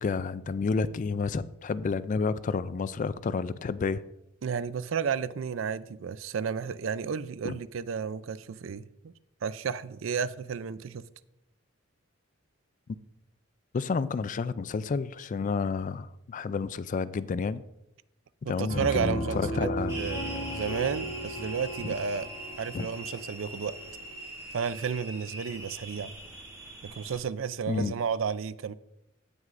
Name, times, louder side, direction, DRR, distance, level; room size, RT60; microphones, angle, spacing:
voice 1, 0.0-4.0 7.4-7.6 13.7-17.6 18.5-20.0 21.8-21.9 22.7-22.9 27.7-27.9, left 4 dB, 40° left, 0.3 m, -30 dB
voice 2, 4.4-9.1 9.4-11.0 18.4-22.3 22.6-23.8 24.5-26.1 26.8-28.7, right 6 dB, 65° right, 0.4 m, -32 dB
Piano, 18.7-24.2, equal, 75° left, 2.8 m, -36 dB
sound 1, 19.9-27.2, right 1 dB, 15° right, 2.3 m, -42 dB
16.5 x 6.3 x 2.5 m
head